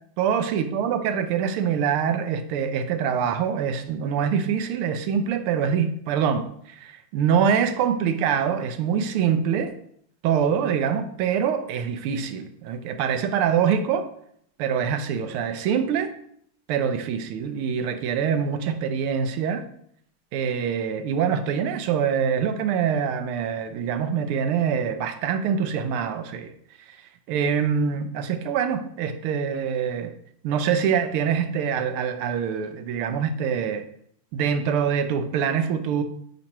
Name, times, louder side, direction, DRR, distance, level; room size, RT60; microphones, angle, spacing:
voice 1, 0.2-9.8 10.2-14.1 14.6-16.1 16.7-19.6 20.3-26.5 26.9-27.0 27.3-30.1 30.4-33.8 34.3-36.0, right 7 dB, 80° right, 1.5 m, -24 dB
8.7 x 3.0 x 4.4 m
omnidirectional pair, 2.4 m